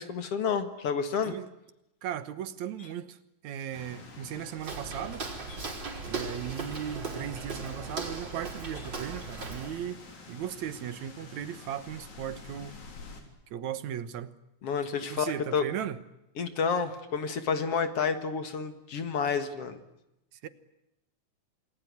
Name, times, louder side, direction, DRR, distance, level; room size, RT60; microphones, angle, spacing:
voice 1, 0.0-1.3 14.6-15.6 16.4-19.8, left 6 dB, 55° left, 2.5 m, -30 dB
voice 2, 2.0-5.3 6.1-10.0 10.3-12.7 13.5-14.3 15.1-16.0 20.3-20.5, right 10 dB, 75° right, 2.5 m, -37 dB
sound 1, 3.7-13.2, left 4 dB, 80° left, 5.2 m, -49 dB
Walk footsteps, 4.6-9.9, right 4 dB, 35° right, 4.9 m, -38 dB
28.0 x 20.5 x 9.5 m
omnidirectional pair, 3.3 m